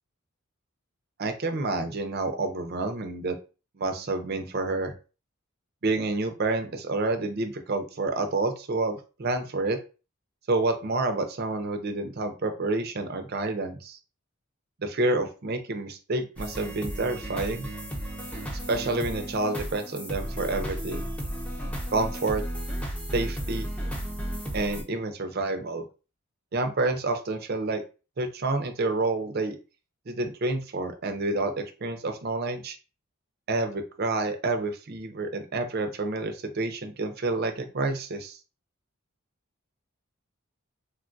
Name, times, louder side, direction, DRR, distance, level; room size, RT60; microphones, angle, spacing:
voice 1, 1.2-3.4 3.8-4.9 5.8-9.8 10.5-14.0 14.8-17.7 18.7-21.1 21.9-22.4 23.1-23.7 24.5-25.8 26.5-27.8 28.2-29.6 30.1-32.8 33.5-38.4, right 2 dB, 50° right, 6 dB, 0.5 m, -29 dB
sound 1, 16.4-24.8, equal, 5° left, 0.5 m, -34 dB
3.5 x 2.3 x 2.5 m, 0.33 s
head